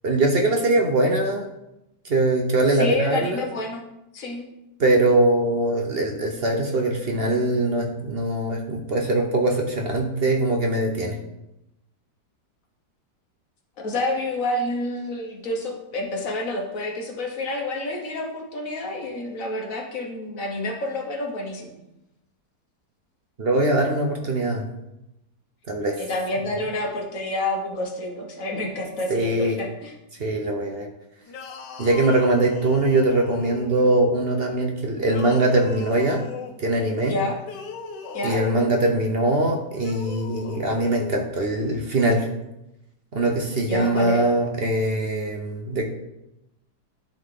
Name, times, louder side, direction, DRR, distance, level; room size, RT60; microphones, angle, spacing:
voice 1, 0.0-1.5 2.0-3.4 4.8-11.2 23.4-24.7 25.7-26.0 29.1-29.6 30.2-30.9 31.8-36.2 36.6-37.1 38.2-42.3 43.1-45.8, right 2 dB, 45° right, 2 dB, 0.8 m, -22 dB
voice 2, 2.8-3.8 4.1-4.4 13.8-21.7 26.0-29.9 37.1-37.4 38.1-38.4 43.7-44.2, left 1 dB, 55° left, 1 dB, 1.4 m, -28 dB
sound 1, 31.3-34.0 35.1-36.6 37.4-38.9 39.8-41.2, left 4 dB, 80° left, 1.4 m, -38 dB
11.5 x 3.9 x 3.8 m, 0.91 s
omnidirectional pair, 1.8 m